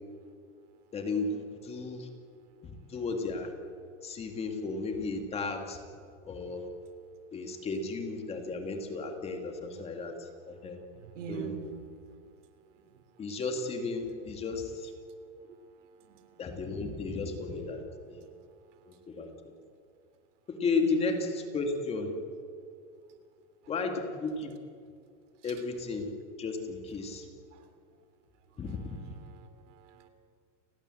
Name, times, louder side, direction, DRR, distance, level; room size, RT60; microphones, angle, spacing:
voice 1, 0.9-2.1 2.9-3.5 4.0-5.8 6.2-6.7 7.3-10.8 11.3-11.5 13.2-14.9 16.4-17.8 18.1-18.2 18.9-19.5 20.5-22.1 23.7-24.5 25.4-26.1 26.4-27.3 28.6-29.2, left 3 dB, 15° left, 4 dB, 2.3 m, -34 dB
voice 2, 11.0-11.7 16.1-16.3 20.8-21.1 27.5-27.6 29.3-30.1, right 7 dB, 65° right, 10 dB, 3.4 m, -43 dB
30.0 x 20.0 x 7.8 m, 2.2 s
supercardioid pair, 170°, 38 cm